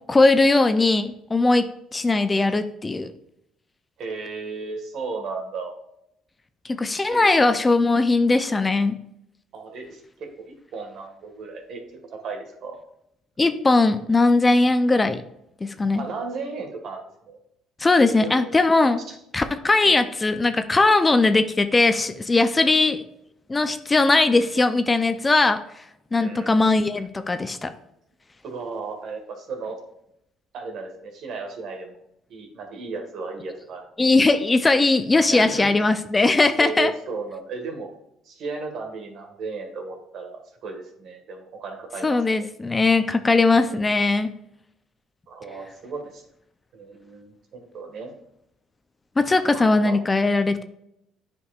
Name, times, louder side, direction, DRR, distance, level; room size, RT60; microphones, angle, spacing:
voice 1, 0.1-1.7 1.9-3.1 6.7-9.0 13.4-15.2 15.6-16.0 17.8-19.0 19.3-23.0 23.5-25.6 26.1-27.7 34.0-36.9 42.0-44.3 49.2-50.6, left 3 dB, 20° left, 10 dB, 0.5 m, -19 dB
voice 2, 4.0-5.7 7.1-7.6 9.5-11.8 12.1-12.8 16.0-17.4 18.1-18.5 19.1-19.2 19.8-19.9 22.6-22.8 26.2-26.6 28.4-29.8 30.5-32.0 32.3-33.9 35.3-35.7 36.6-37.9 38.3-42.2 43.7-43.8 45.3-46.2 46.7-48.1 49.5-50.0, right 4 dB, 65° right, 3 dB, 1.7 m, -35 dB
9.6 x 5.3 x 2.5 m, 0.78 s
supercardioid pair, 80°, 0 cm